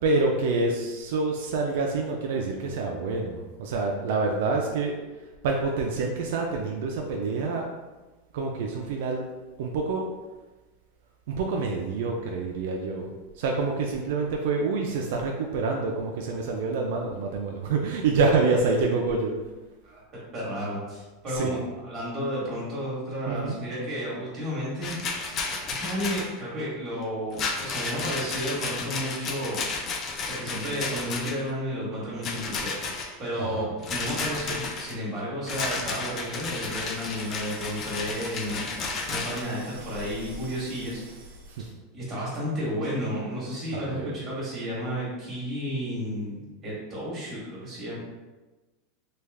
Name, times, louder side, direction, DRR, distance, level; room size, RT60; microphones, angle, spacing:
voice 1, 0.0-4.9 5.4-7.7 8.3-9.2 9.6-10.1 11.3-19.3 21.3-21.5 23.3-23.6 33.4-33.8 41.5-41.7 43.7-44.1, right 3 dB, 70° right, 1 dB, 0.4 m, -27 dB
voice 2, 19.8-21.6 21.8-25.0 25.6-29.9 30.3-32.7 33.2-41.0 41.6-48.0, equal, 20° right, -7 dB, 1.4 m, -32 dB
Rattle, 24.8-26.3 27.3-31.5 32.2-33.1 33.8-35.0 35.5-39.4, left 4 dB, 30° left, 0.4 m, -32 dB
sound 1, 36.7-41.8, right 2 dB, 85° right, 0.9 m, -46 dB
3.2 x 2.3 x 3.4 m, 1.2 s
supercardioid pair, 160°, 0 cm